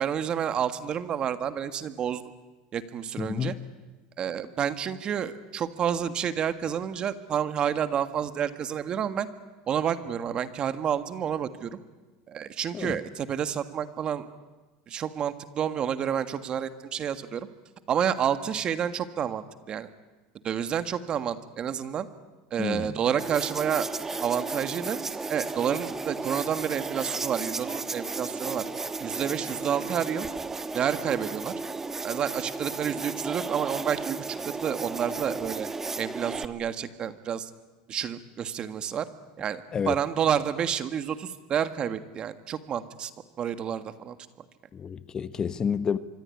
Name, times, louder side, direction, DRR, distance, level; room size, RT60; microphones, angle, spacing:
voice 1, 0.0-2.2 2.7-3.5 4.2-9.3 9.7-11.8 12.3-14.3 14.9-17.5 17.9-19.9 20.4-22.1 22.5-23.9 24.2-25.0 25.3-28.6 29.0-30.3 30.7-31.5 32.0-35.7 36.0-37.5 37.9-39.1 39.4-43.1 43.4-44.2, right 8 dB, 35° right, 1.7 m, -29 dB
voice 2, 3.2-3.6 12.7-13.0 22.6-23.0 39.7-39.9 44.7-46.0, left 7 dB, 25° left, 1.2 m, -29 dB
sound 1, 23.2-36.5, right 3 dB, 15° right, 1.3 m, -34 dB
25.0 x 23.5 x 9.8 m
supercardioid pair, 120°, 3 cm